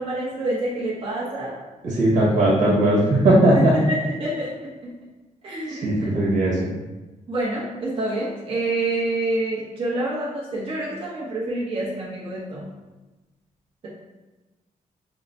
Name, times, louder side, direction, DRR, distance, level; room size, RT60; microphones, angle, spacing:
voice 1, 0.0-1.6 3.5-4.9 5.4-6.1 7.3-12.6, right 2 dB, 45° right, -8 dB, 0.9 m, -27 dB
voice 2, 1.8-3.7 5.8-6.7, right 1 dB, 80° right, -5 dB, 1.4 m, -18 dB
5.4 x 2.1 x 2.6 m, 1.1 s
wide cardioid pair, 155°, 13 cm